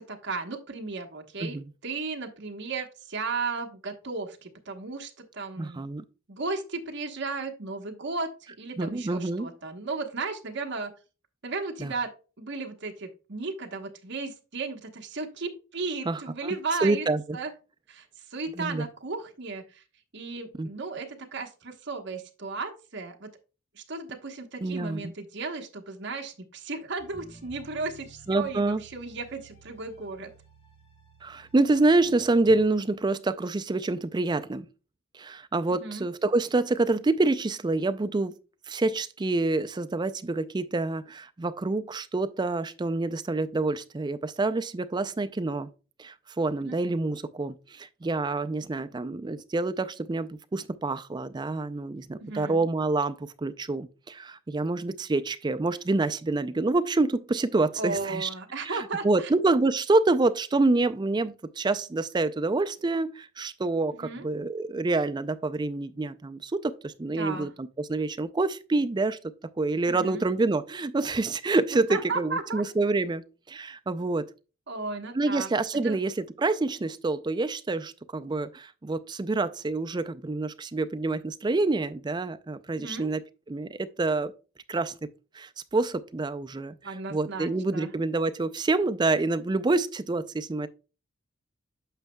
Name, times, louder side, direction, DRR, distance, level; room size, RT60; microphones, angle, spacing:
voice 1, 0.0-1.6 1.8-5.8 6.3-10.9 11.4-17.1 17.3-17.5 17.9-19.8 20.1-23.3 23.7-30.3 35.8-36.1 46.6-46.8 52.2-52.6 57.8-59.3 64.0-64.3 67.2-67.5 69.9-70.2 71.7-72.6 74.7-75.5 75.8-76.0 82.7-83.1 86.8-87.9, right 4 dB, 55° right, 1.1 m, -35 dB
voice 2, 5.6-6.0 8.8-9.5 11.8-11.9 16.1-17.4 18.6-18.8 20.6-20.7 24.6-25.1 28.3-28.8 31.2-34.7 35.1-38.3 38.7-45.7 46.0-58.3 58.6-69.2 69.6-74.3 75.1-84.3 84.7-85.1 85.4-86.8 87.1-90.7, right 2 dB, 20° right, 0.4 m, -27 dB
sound 1, 27.0-32.6, right 3 dB, 30° left, 1.4 m, -53 dB
9.0 x 6.2 x 2.2 m
head